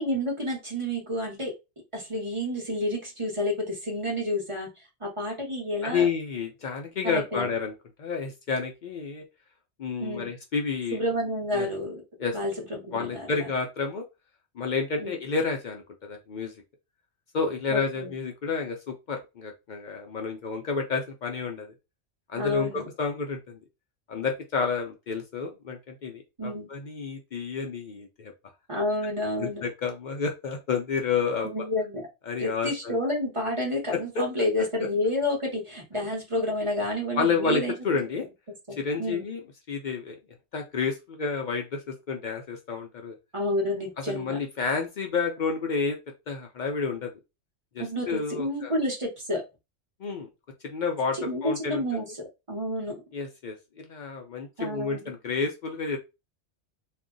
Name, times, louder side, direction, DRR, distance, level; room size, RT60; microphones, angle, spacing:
voice 1, 0.0-1.5 1.9-4.7 5.0-6.1 7.0-7.5 10.0-10.3 10.9-12.0 12.3-13.5 15.0-15.1 17.7-18.1 22.3-22.9 26.4-26.7 28.7-29.6 31.4-32.1 32.4-37.7 39.0-39.3 43.3-44.4 47.8-49.4 51.1-53.0 54.6-55.0, left 1 dB, 30° right, -1 dB, 0.9 m, -29 dB
voice 2, 5.8-7.7 8.0-9.2 9.8-11.0 11.6-11.7 12.2-12.4 12.9-14.0 14.6-16.5 17.3-21.7 22.3-23.6 24.1-28.3 29.4-31.5 32.3-33.0 34.2-34.3 37.2-38.3 38.8-39.4 39.7-40.2 40.5-43.2 44.1-46.0 46.3-47.1 47.7-48.7 50.0-50.3 50.6-51.8 53.1-56.0, left 5 dB, 65° left, 3 dB, 0.4 m, -30 dB
2.4 x 2.2 x 3.7 m, 0.25 s
omnidirectional pair, 1.3 m